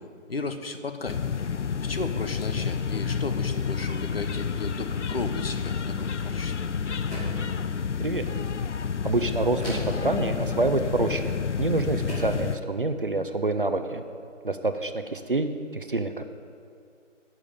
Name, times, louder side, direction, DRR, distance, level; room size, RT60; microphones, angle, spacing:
voice 1, 0.3-1.2 1.8-6.5, left 3 dB, 50° left, 7 dB, 0.9 m, -34 dB
sound 1, 1.1-12.6, left 6 dB, 65° left, 0.6 m, -30 dB
sound 2, 7.1-7.5 9.6-10.1 11.4-11.5 12.1-12.4, equal, 10° left, 2.0 m, -35 dB
voice 2, 9.0-14.0 14.4-16.2, right 2 dB, 45° right, 8 dB, 0.6 m, -27 dB
10.5 x 6.9 x 9.3 m, 2.4 s
figure-of-eight pair, 165°, 38 cm